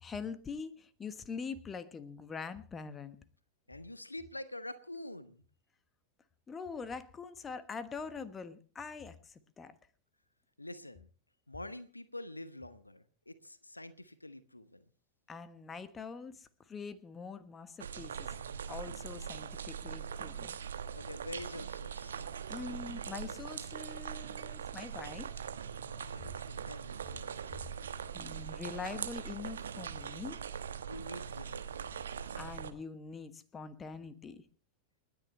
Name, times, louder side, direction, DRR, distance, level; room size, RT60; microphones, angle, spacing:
voice 1, 0.0-3.2 6.5-9.7 15.3-18.3 18.7-20.6 22.5-25.3 28.1-30.4 32.4-34.4, left 5 dB, 20° left, 12 dB, 1.3 m, -44 dB
voice 2, 3.7-5.4 10.6-11.1 11.5-14.8 20.9-22.3 25.7-27.5 30.8-32.0, left 1 dB, 85° left, 14 dB, 1.0 m, -47 dB
sound 1, 17.8-32.7, right 7 dB, 65° right, 1.2 m, -41 dB
29.5 x 10.0 x 3.2 m, 0.38 s
figure-of-eight pair, 90°, 0 cm